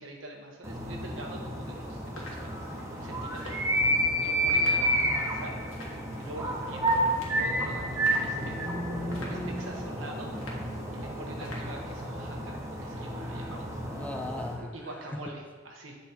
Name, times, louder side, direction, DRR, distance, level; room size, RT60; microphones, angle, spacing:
voice 1, 0.0-3.6 4.2-5.7 6.2-6.9 7.3-8.7 9.1-10.3 10.9-13.8 14.6-16.0, right 1 dB, 70° right, 1 dB, 1.1 m, -44 dB
sound 1, 0.6-14.6, right 1 dB, 15° right, 0.9 m, -31 dB
sound 2, 1.6-12.4, left 1 dB, 85° left, 1.4 m, -49 dB
voice 2, 8.4-9.9 13.9-15.2, left 1 dB, 5° left, 4 dB, 0.4 m, -38 dB
7.9 x 4.0 x 4.3 m, 1.5 s
head